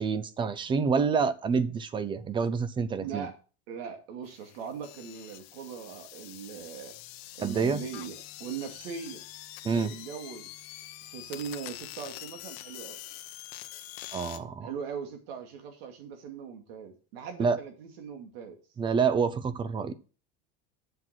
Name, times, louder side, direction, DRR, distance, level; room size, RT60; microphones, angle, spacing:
voice 1, 0.0-3.3 7.4-7.8 9.6-9.9 14.1-14.7 17.4-17.6 18.8-19.9, right 5 dB, 15° right, 0.5 m, -27 dB
voice 2, 3.0-3.4 3.7-6.9 7.4-9.2 9.6-10.5 11.1-13.0 14.6-18.6, right 6 dB, 85° right, 2.4 m, -40 dB
sound 1, 4.2-14.4, left 14 dB, 85° left, 1.1 m, -45 dB
7.7 x 6.0 x 6.0 m
cardioid pair, 160°, 30 cm